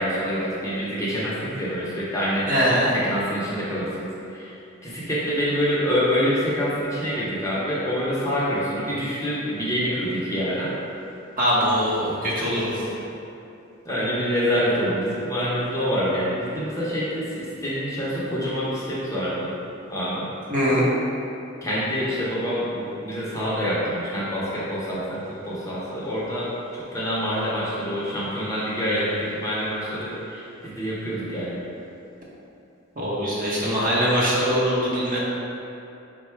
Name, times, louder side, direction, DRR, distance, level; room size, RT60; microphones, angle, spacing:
voice 1, 0.0-2.5 2.9-10.8 12.8-13.0 13.8-19.5 19.9-20.3 21.6-31.6, equal, 15° left, -8 dB, 0.7 m, -26 dB
voice 2, 2.5-2.9 11.4-12.8 20.5-20.8 33.0-35.2, equal, 40° right, -7 dB, 0.9 m, -22 dB
3.8 x 2.2 x 4.4 m, 2.7 s
head